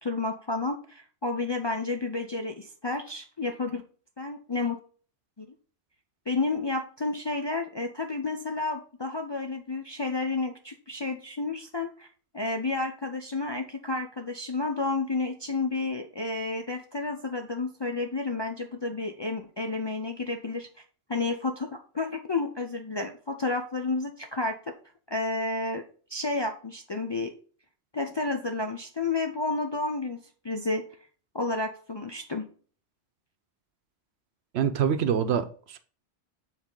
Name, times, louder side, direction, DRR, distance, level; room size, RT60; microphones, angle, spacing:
voice 1, 0.0-3.8 4.2-4.8 5.4-5.5 6.3-20.7 21.1-24.8 25.1-25.8 26.1-27.3 27.9-30.2 30.4-30.8 31.3-32.5, left 3 dB, 40° left, 0.4 m, -31 dB
voice 2, 34.5-35.8, right 8 dB, 75° right, 0.9 m, -25 dB
7.2 x 4.0 x 3.8 m
omnidirectional pair, 1.1 m